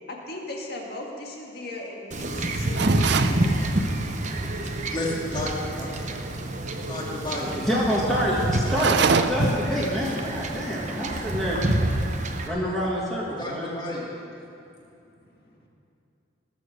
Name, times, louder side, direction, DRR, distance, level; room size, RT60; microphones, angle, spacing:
voice 1, 0.1-3.7, left 2 dB, 50° left, -1 dB, 2.0 m, -37 dB
Wind / Ocean / Boat Water vehicle, 2.1-12.5, right 1 dB, 35° right, 0.8 m, -27 dB
sound 1, 2.8-3.4 8.6-9.6, right 5 dB, 55° right, 0.5 m, -23 dB
voice 2, 4.9-6.0 6.9-7.6 13.4-14.3, left 2 dB, 25° left, -3 dB, 2.2 m, -32 dB
voice 3, 7.6-9.0 9.3-11.6 12.4-13.7, equal, ahead, -7 dB, 1.6 m, -27 dB
19.5 x 7.1 x 6.7 m, 2.7 s
head